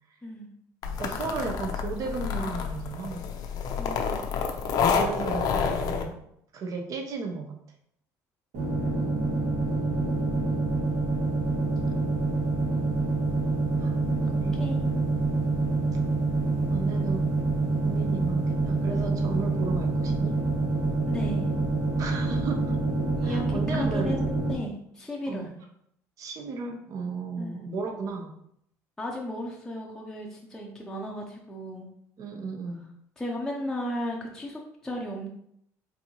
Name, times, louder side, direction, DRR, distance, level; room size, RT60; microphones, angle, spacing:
sound 1, 0.8-6.0, left 6 dB, 60° left, 0.6 m, -28 dB
voice 1, 1.0-3.3 4.9-6.2 6.5-7.6 9.9-10.2 13.8-14.6 16.7-17.3 17.8-20.4 22.0-22.8 23.2-24.1 25.3-25.5 26.2-28.3 32.2-32.9, right 4 dB, 50° right, 3 dB, 0.7 m, -35 dB
voice 2, 3.8-4.2 8.7-9.3 14.5-15.1 21.1-21.5 23.2-25.5 27.4-27.6 29.0-31.9 33.2-35.3, equal, 5° left, -2 dB, 0.6 m, -35 dB
sound 2, 8.5-24.6, right 3 dB, 70° right, 1.4 m, -26 dB
4.3 x 2.7 x 2.9 m, 0.72 s
cardioid pair, 105°, 7 cm